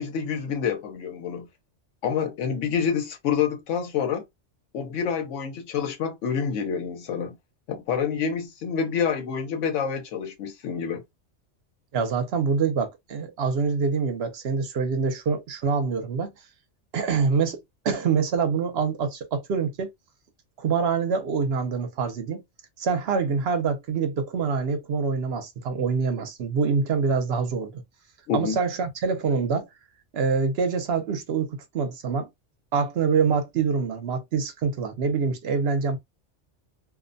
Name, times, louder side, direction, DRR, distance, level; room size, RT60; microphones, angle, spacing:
voice 1, 0.0-1.5 2.0-4.2 4.7-7.4 7.7-11.0 28.3-28.6, left 7 dB, 90° left, 1.0 m, -27 dB
voice 2, 11.9-16.3 16.9-19.9 20.6-22.4 22.8-27.8 28.3-29.7 30.1-32.3 32.7-36.0, right 5 dB, 65° right, 0.8 m, -25 dB
2.5 x 2.1 x 2.5 m
omnidirectional pair, 1.2 m